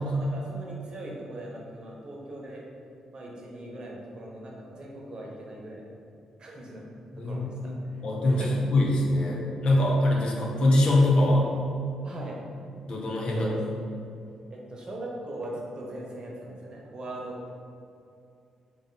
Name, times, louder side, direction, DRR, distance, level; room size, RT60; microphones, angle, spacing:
voice 1, 0.0-2.6 3.1-5.9 6.4-6.8 7.2-7.6 7.9-8.6 12.0-12.4 13.3-13.6 14.5-17.5, right 1 dB, 40° right, -3 dB, 1.1 m, -40 dB
voice 2, 7.1-7.7 8.0-8.4 8.7-11.5 12.9-13.5, left 1 dB, 50° left, -3 dB, 1.0 m, -23 dB
3.9 x 3.3 x 3.9 m, 2.5 s
hypercardioid pair, 40°, 2 cm